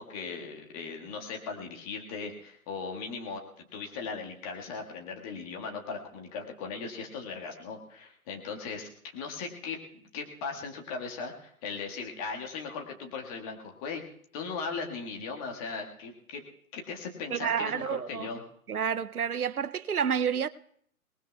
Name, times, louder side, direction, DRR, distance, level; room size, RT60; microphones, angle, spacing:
voice 1, 0.0-9.8 10.1-14.0 14.3-16.4 16.7-18.4, left 5 dB, 25° left, 1.6 m, -38 dB
voice 2, 17.3-18.3 18.7-20.5, right 7 dB, 80° right, 0.6 m, -29 dB
29.5 x 19.0 x 2.3 m
figure-of-eight pair, 125°, 43 cm